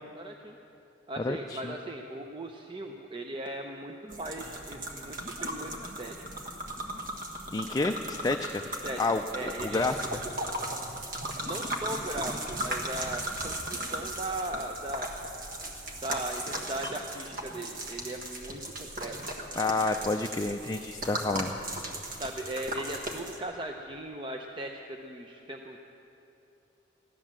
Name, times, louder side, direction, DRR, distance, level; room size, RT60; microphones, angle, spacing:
voice 1, 0.1-0.6 1.1-6.2 8.6-9.0 9.3-9.8 11.4-15.1 16.0-19.2 22.2-25.8, right 1 dB, 25° right, 3 dB, 0.6 m, -38 dB
voice 2, 1.2-1.7 7.5-8.7 9.0-9.2 9.6-9.9 19.6-21.6, left 3 dB, 20° left, 5 dB, 0.3 m, -29 dB
sound 1, 4.1-23.4, right 1 dB, 45° right, 1.5 m, -37 dB
15.5 x 11.0 x 7.4 m, 2.9 s
head